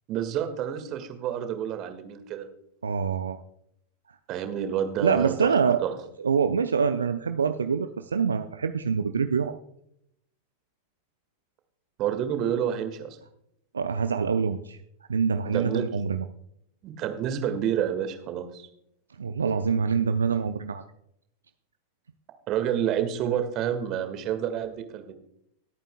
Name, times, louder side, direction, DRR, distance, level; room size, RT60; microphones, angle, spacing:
voice 1, 0.1-2.5 4.3-5.9 12.0-13.2 15.4-15.8 16.8-18.7 22.5-25.1, right 9 dB, 35° right, 8 dB, 1.7 m, -29 dB
voice 2, 2.8-3.4 5.0-5.8 6.2-9.6 13.7-14.8 15.1-16.2 19.2-20.8, right 6 dB, 70° right, 9 dB, 0.5 m, -25 dB
24.5 x 8.9 x 2.2 m, 0.74 s
figure-of-eight pair, 90°, 0 cm